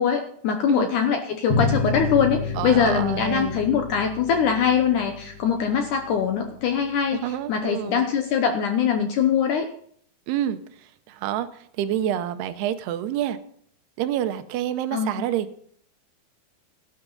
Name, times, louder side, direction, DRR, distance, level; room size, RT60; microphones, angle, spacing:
voice 1, 0.0-7.2 7.5-9.7 14.9-15.2, left 7 dB, 70° left, 5 dB, 1.9 m, -22 dB
sound 1, 1.5-6.6, left 4 dB, 45° left, 1.3 m, -30 dB
voice 2, 2.6-3.6 7.2-8.1 10.3-13.4 14.0-15.5, right 11 dB, 85° right, 10 dB, 2.8 m, -28 dB
17.0 x 9.7 x 3.9 m, 0.62 s
omnidirectional pair, 4.6 m